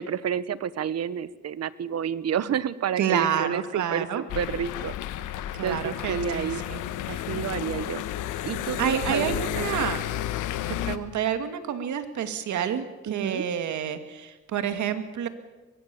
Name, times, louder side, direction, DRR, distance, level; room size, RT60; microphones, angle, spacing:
voice 1, 0.0-4.9 5.6-6.6 7.1-8.0 8.4-9.9 13.1-13.5, right 8 dB, 55° right, 17 dB, 1.1 m, -30 dB
voice 2, 3.0-4.2 5.6-6.8 7.1-7.2 8.8-10.0 10.7-15.3, right 8 dB, 75° right, 8 dB, 2.4 m, -29 dB
sound 1, 4.3-11.0, left 12 dB, 90° left, 1.3 m, -32 dB
23.0 x 23.0 x 7.1 m, 1.2 s
cardioid pair, 90°, 30 cm